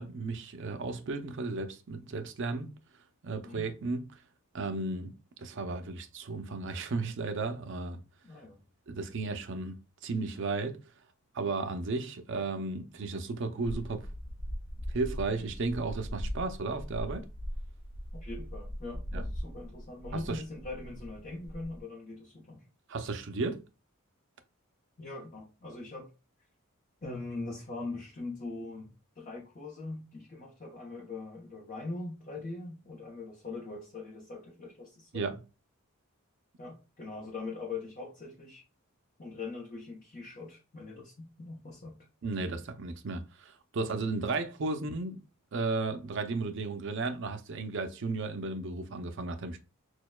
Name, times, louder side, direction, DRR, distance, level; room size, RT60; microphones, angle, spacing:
voice 1, 0.0-2.7 3.2-4.0 4.5-8.0 8.9-10.8 11.3-14.1 14.9-17.2 19.1-19.2 20.3-20.4 22.9-23.6 35.1-35.4 42.2-45.2 45.5-49.6, right 3 dB, 55° right, 0.5 m, -34 dB
voice 2, 8.2-8.6 18.1-22.6 25.0-26.1 27.0-35.3 36.6-38.6 39.2-42.0, left 3 dB, 40° left, 0.8 m, -42 dB
sound 1, 13.6-21.8, equal, 65° left, 0.9 m, -40 dB
6.2 x 2.2 x 2.2 m
head